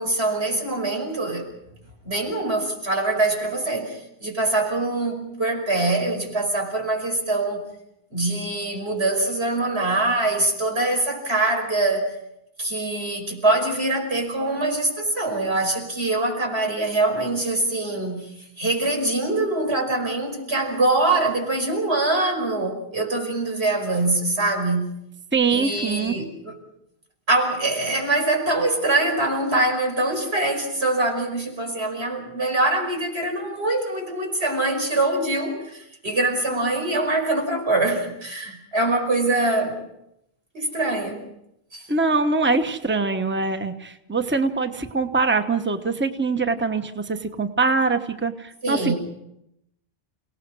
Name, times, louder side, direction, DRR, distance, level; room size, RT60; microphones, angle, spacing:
voice 1, 0.0-1.5 2.0-7.6 8.1-12.2 12.6-24.9 25.5-26.6 27.3-39.8 40.5-41.2 41.7-41.9 48.6-49.0, right 2 dB, 90° right, 2 dB, 5.8 m, -24 dB
voice 2, 25.3-26.2 41.9-48.9, right 4 dB, 10° right, 8 dB, 1.1 m, -23 dB
29.5 x 18.5 x 6.3 m, 0.82 s
omnidirectional pair, 1.0 m